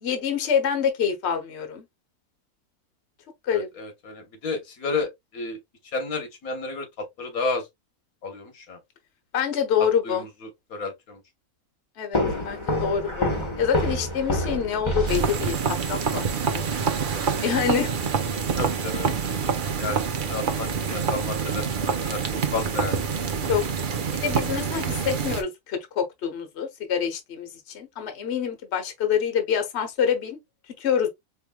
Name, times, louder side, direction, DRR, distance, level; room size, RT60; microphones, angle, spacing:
voice 1, 0.0-1.8 3.4-3.7 9.3-10.3 12.0-13.3 13.6-16.6 17.4-18.0 23.5-23.6 24.2-30.4 30.8-31.1, left 7 dB, 55° left, 1.2 m, -26 dB
voice 2, 3.5-5.6 5.9-7.7 8.2-8.8 10.0-10.3 10.7-11.2 18.6-19.2 19.8-22.2 22.5-23.0, left 3 dB, 85° left, 1.6 m, -31 dB
sound 1, 12.1-15.8, left 1 dB, 20° left, 1.2 m, -27 dB
sound 2, 15.1-25.4, right 6 dB, 45° right, 0.7 m, -26 dB
4.6 x 3.2 x 2.2 m
omnidirectional pair, 1.5 m